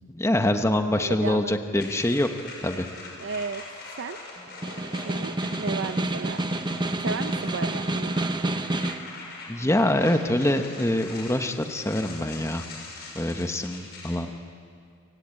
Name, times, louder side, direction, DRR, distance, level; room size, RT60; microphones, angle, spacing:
voice 1, 0.1-2.3 2.6-2.9 9.5-12.6 13.1-14.3, left 1 dB, 15° left, 6 dB, 1.0 m, -24 dB
voice 2, 0.9-1.5 3.2-3.6 4.0-4.2 5.0-6.4 7.0-8.1, right 4 dB, 55° right, 9 dB, 0.6 m, -33 dB
sound 1, 1.8-14.2, left 3 dB, 50° left, 6.2 m, -42 dB
Snare drum, 4.5-9.1, right 2 dB, 20° right, 0.9 m, -28 dB
28.0 x 17.0 x 9.0 m, 2.4 s
head